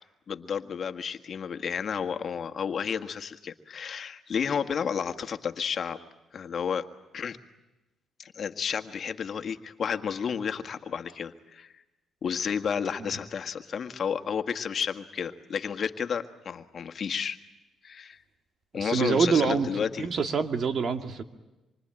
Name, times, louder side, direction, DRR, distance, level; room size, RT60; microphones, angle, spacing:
voice 1, 0.3-6.0 6.3-6.9 7.1-7.4 8.2-11.7 12.2-17.4 17.8-18.2 18.7-20.1, left 7 dB, 50° left, 7 dB, 1.7 m, -31 dB
voice 2, 18.8-19.7 20.0-21.2, right 5 dB, 50° right, 7 dB, 2.3 m, -25 dB
27.0 x 24.5 x 9.0 m, 1.0 s
cardioid pair, 90°, 0 cm